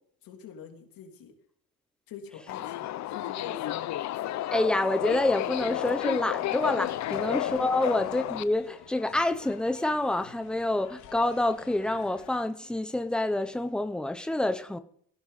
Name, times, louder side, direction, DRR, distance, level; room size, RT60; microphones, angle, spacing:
voice 1, 0.2-1.3 2.1-3.9 7.2-7.3 7.8-7.9, left 6 dB, 65° left, 3.2 m, -45 dB
Subway metro underground, 2.5-8.4, left 13 dB, 50° left, 0.6 m, -32 dB
voice 2, 4.5-14.8, left 1 dB, ahead, 0.7 m, -27 dB
sound 1, 5.0-12.3, left 11 dB, 85° left, 2.2 m, -50 dB
18.0 x 16.0 x 4.1 m
cardioid pair, 175°, 37 cm